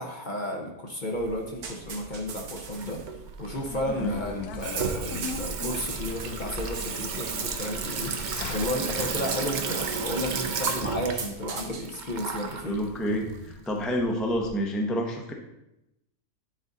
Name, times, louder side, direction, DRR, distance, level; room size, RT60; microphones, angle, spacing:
voice 1, 0.0-3.0 3.4-12.8, left 1 dB, 40° left, 1 dB, 0.7 m, -33 dB
sound 1, 1.1-13.5, right 5 dB, 80° right, 1.4 m, -42 dB
Water tap faucet / Sink (filling or washing), 2.8-14.5, right 5 dB, 65° right, 0.4 m, -33 dB
sound 2, 3.5-9.1, left 7 dB, 90° left, 1.1 m, -40 dB
voice 2, 12.6-15.3, equal, ahead, 1 dB, 0.4 m, -28 dB
9.6 x 4.0 x 3.8 m, 0.88 s
omnidirectional pair, 1.6 m